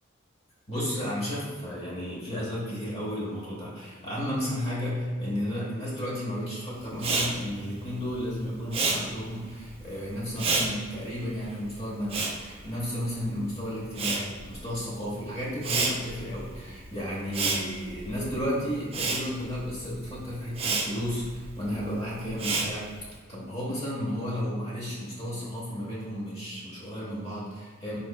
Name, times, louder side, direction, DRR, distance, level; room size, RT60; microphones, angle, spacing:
voice 1, 0.7-22.9 23.3-28.0, equal, 30° left, -7 dB, 0.7 m, -33 dB
Respiratory sounds, 6.9-13.4 13.7-23.1, right 3 dB, 30° right, 0.3 m, -31 dB
3.8 x 3.0 x 2.2 m, 1.5 s
head